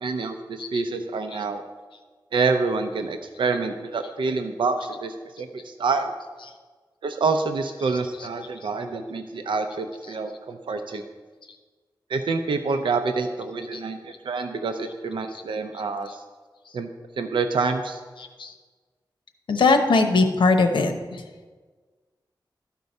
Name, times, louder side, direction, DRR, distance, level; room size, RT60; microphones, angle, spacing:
voice 1, 0.0-1.6 2.3-6.1 7.0-11.0 12.1-16.2 16.7-16.9 17.2-18.0, right 4 dB, 90° right, 6 dB, 0.6 m, -27 dB
voice 2, 19.5-20.9, left 3 dB, 85° left, 6 dB, 0.9 m, -20 dB
13.0 x 4.6 x 5.3 m, 1.4 s
wide cardioid pair, 135°, 8 cm